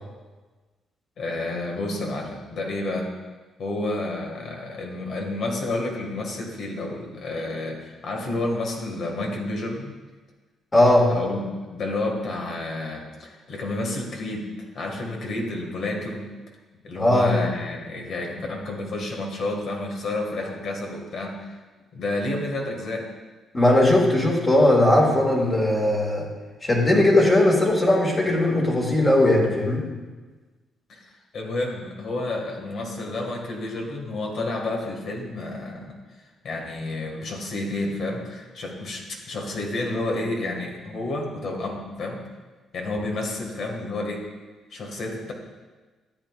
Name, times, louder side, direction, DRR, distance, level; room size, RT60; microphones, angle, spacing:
voice 1, 1.2-3.1 3.6-10.0 11.1-14.5 14.7-16.3 16.8-21.5 21.9-23.1 30.9-31.0 31.3-36.0 36.4-42.2 42.7-44.3 44.7-45.3, left 2 dB, 65° left, 1 dB, 1.9 m, -30 dB
voice 2, 10.7-11.1 17.0-17.3 23.5-26.3 26.6-29.8, left 1 dB, 25° left, -3 dB, 2.1 m, -18 dB
13.0 x 8.6 x 2.5 m, 1.3 s
cardioid pair, 90°, 0 cm